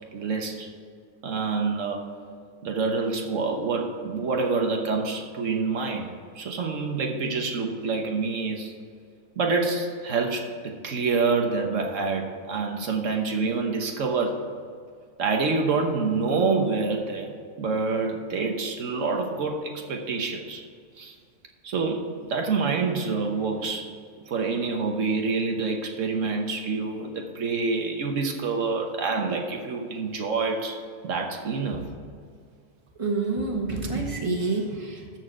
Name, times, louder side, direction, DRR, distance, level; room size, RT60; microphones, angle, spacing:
voice 1, 0.1-0.7 1.2-2.0 2.6-8.7 9.4-14.4 15.2-20.6 21.0-21.1 21.6-23.9 24.3-31.9, right 4 dB, 85° right, 3 dB, 1.4 m, -27 dB
voice 2, 33.0-35.2, right 3 dB, 25° right, 0 dB, 1.5 m, -28 dB
13.0 x 4.6 x 7.5 m, 2.2 s
omnidirectional pair, 1.3 m